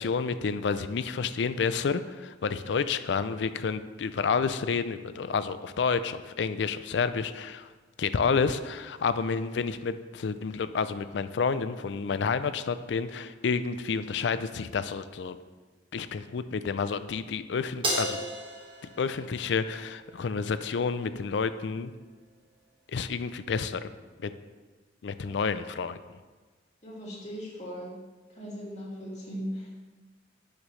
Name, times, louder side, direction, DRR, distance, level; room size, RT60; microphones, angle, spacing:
voice 1, 0.0-7.7 8.0-15.4 15.9-18.2 19.0-21.9 22.9-23.9 24.2-24.3 25.0-26.0, left 5 dB, 65° left, 12 dB, 0.4 m, -29 dB
Crash cymbal, 17.8-20.4, right 1 dB, 30° right, 1.5 m, -34 dB
voice 2, 26.8-28.0 28.3-29.7, equal, 40° left, -5 dB, 2.5 m, -38 dB
10.5 x 6.5 x 3.2 m, 1.3 s
head